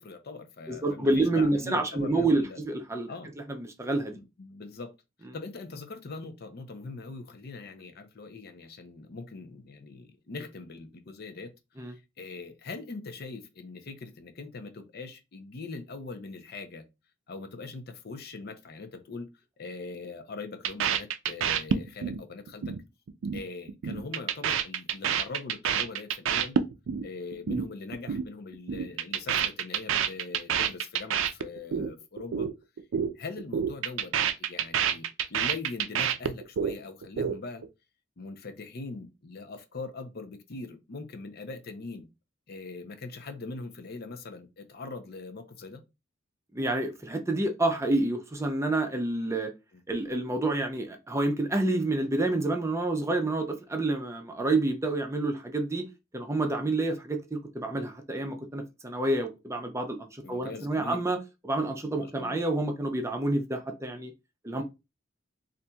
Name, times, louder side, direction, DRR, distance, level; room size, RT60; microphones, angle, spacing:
voice 1, 0.0-2.6 3.1-3.3 4.1-4.9 5.3-11.5 11.8-16.8 17.3-22.7 23.3-26.6 27.0-32.5 33.1-37.6 38.2-42.1 42.5-45.8 60.2-61.0 62.0-62.4, left 3 dB, 55° left, 0.6 m, -41 dB
voice 2, 0.7-3.1 3.5-4.2 11.8-11.9 46.5-49.5 49.9-55.9 56.1-61.2 61.4-64.1 64.4-64.6, right 2 dB, 15° right, 0.5 m, -28 dB
sound 1, 20.6-22.2 22.5-22.8 23.1-23.4 23.7-27.1 27.3-27.6 27.9-28.3 28.5-31.9 32.2-32.5 32.8-33.1 33.4-36.7 37.0-37.7, right 8 dB, 85° right, 0.4 m, -28 dB
4.1 x 2.5 x 2.2 m
head